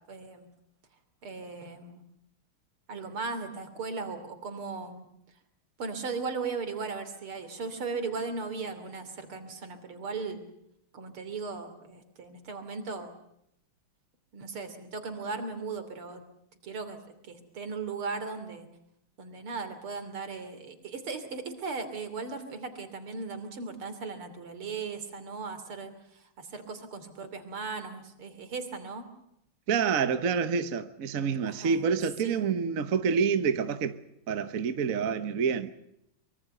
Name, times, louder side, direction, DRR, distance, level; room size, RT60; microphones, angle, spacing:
voice 1, 0.1-0.5 1.2-2.0 2.9-5.1 5.8-10.4 10.9-13.1 14.3-16.2 16.6-17.0 17.3-18.7 19.2-29.1 31.4-31.8 32.2-32.4, right 4 dB, 80° right, 3.8 m, -37 dB
voice 2, 29.7-34.0 34.3-35.7, right 6 dB, 45° right, 1.3 m, -27 dB
24.5 x 23.5 x 6.7 m
omnidirectional pair, 2.3 m